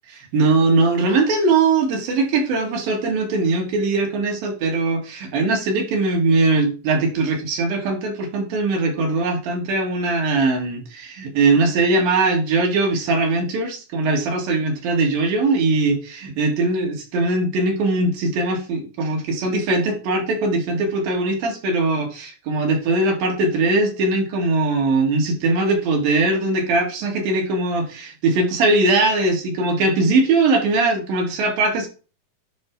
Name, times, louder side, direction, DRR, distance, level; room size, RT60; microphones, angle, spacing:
voice 1, 0.3-31.9, right 3 dB, 75° right, 1 dB, 3.6 m, -20 dB
10.0 x 3.5 x 4.7 m, 0.35 s
omnidirectional pair, 4.2 m